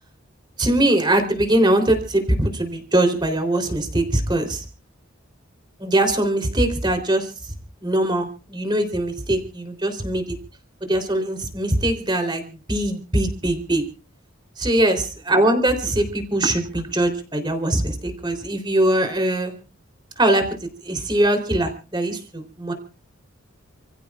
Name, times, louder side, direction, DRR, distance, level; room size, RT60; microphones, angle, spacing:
voice 1, 0.6-4.6 5.8-7.3 7.8-10.4 10.8-13.8 14.6-19.5 20.2-20.6 20.8-22.7, right 1 dB, 20° right, 5 dB, 3.5 m, -21 dB
30.0 x 15.5 x 2.4 m, 0.35 s
head